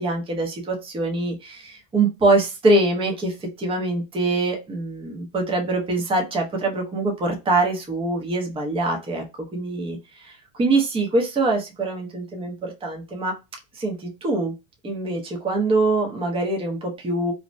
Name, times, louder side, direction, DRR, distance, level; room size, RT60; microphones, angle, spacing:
voice 1, 0.0-9.2 9.5-13.3 13.7-14.5 14.8-17.3, right 2 dB, 15° right, 2 dB, 0.6 m, -24 dB
2.7 x 2.0 x 3.1 m, 0.25 s
supercardioid pair, 130°, 40 cm